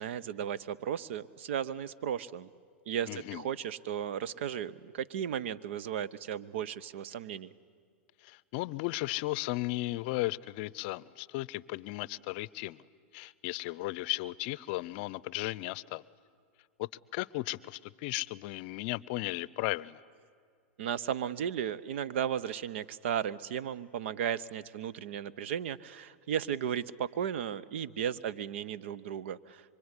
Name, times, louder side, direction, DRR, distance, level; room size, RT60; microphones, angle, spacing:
voice 1, 0.0-2.5 2.9-7.5 20.8-29.6, right 9 dB, 70° right, 18 dB, 0.8 m, -35 dB
voice 2, 3.1-3.5 8.2-12.8 13.1-16.0 16.8-20.0, left 19 dB, 55° left, 21 dB, 0.6 m, -35 dB
25.0 x 24.0 x 9.8 m, 2.2 s
hypercardioid pair, 115°, 7 cm